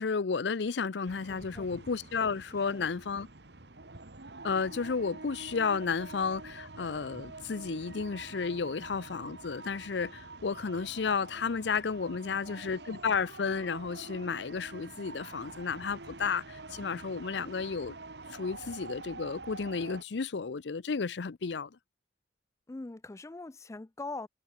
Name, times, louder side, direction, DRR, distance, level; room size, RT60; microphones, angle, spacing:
voice 1, 0.0-3.3 4.4-18.0 18.3-21.8, left 5 dB, 80° left, 0.6 m, -32 dB
sound 1, 1.0-20.0, right 3 dB, 70° right, 2.1 m, -47 dB
voice 2, 1.3-1.7 2.5-2.9 12.1-12.7 22.7-24.3, left 3 dB, 15° left, 0.4 m, -43 dB
head